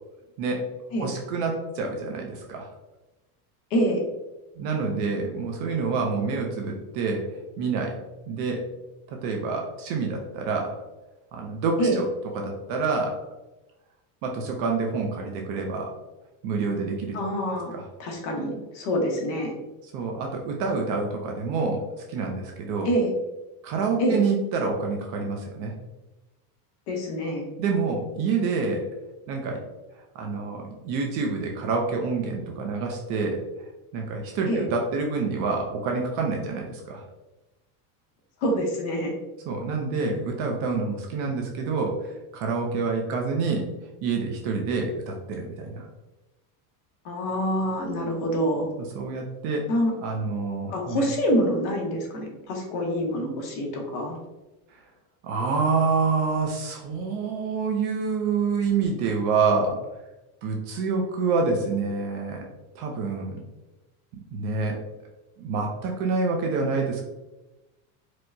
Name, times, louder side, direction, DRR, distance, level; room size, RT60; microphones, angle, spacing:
voice 1, 1.0-2.7 4.6-7.2 7.6-8.0 8.3-8.6 9.1-10.8 11.3-12.0 12.3-13.2 14.2-15.9 16.4-17.2 17.7-17.8 19.9-21.8 22.1-22.9 23.6-25.7 27.6-28.9 29.3-29.6 30.1-33.4 33.9-37.0 39.5-43.7 44.0-45.9 48.9-49.6 50.0-51.0 55.2-59.8 60.4-62.4 62.8-63.4 64.3-64.8 65.4-67.0, right 4 dB, 40° right, 1 dB, 0.4 m, -27 dB
voice 2, 3.7-4.0 11.8-12.0 17.1-17.7 18.0-19.5 22.8-23.1 24.0-24.2 26.9-27.5 34.5-34.6 38.4-39.1 47.0-48.7 49.7-49.9 50.7-54.2, equal, 45° left, 1 dB, 0.8 m, -26 dB
4.4 x 2.1 x 2.5 m, 1.0 s
cardioid pair, 170°, 45 cm